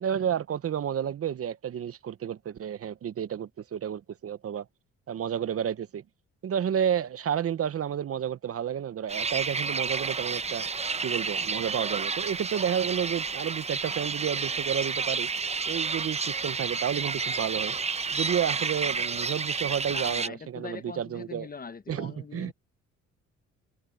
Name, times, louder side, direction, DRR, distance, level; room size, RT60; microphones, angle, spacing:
voice 1, 0.0-4.6 5.1-6.0 6.4-10.6 11.0-15.3 15.7-17.8 18.1-21.5 21.9-22.5, right 9 dB, 50° right, 0.9 m, -31 dB
sound 1, 9.1-20.3, right 4 dB, 20° right, 0.7 m, -30 dB
voice 2, 19.9-22.5, left 5 dB, 30° left, 1.1 m, -42 dB
cardioid pair, 90°, 30 cm